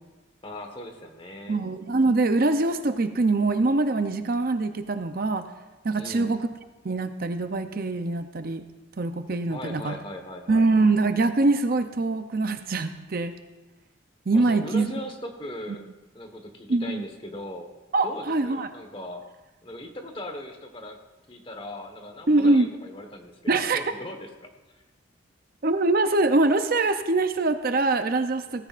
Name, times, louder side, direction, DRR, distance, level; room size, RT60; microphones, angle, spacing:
voice 1, 0.4-1.6 6.0-6.3 9.5-10.7 14.3-15.9 16.1-17.7 18.0-19.2 19.6-21.0 21.3-24.5, left 1 dB, 25° left, 4 dB, 1.3 m, -39 dB
voice 2, 1.5-5.4 5.8-6.4 6.8-8.6 9.0-9.9 10.5-13.3 14.3-14.9 16.7-17.0 17.9-18.7 22.3-22.7 23.5-23.8 25.6-28.7, right 2 dB, 50° right, 8 dB, 0.6 m, -23 dB
17.5 x 15.0 x 2.5 m, 1.1 s
head